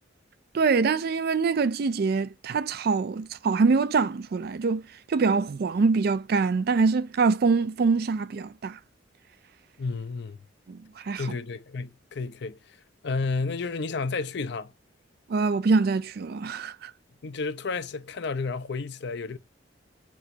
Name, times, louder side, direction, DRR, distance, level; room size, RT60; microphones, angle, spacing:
voice 1, 0.5-4.8 5.1-8.8 10.7-11.2 15.3-16.9, right 4 dB, 55° right, 0.4 m, -24 dB
voice 2, 9.8-10.4 11.1-12.8 13.0-14.7 17.2-19.4, left 4 dB, 60° left, 0.5 m, -31 dB
6.1 x 2.9 x 2.5 m
head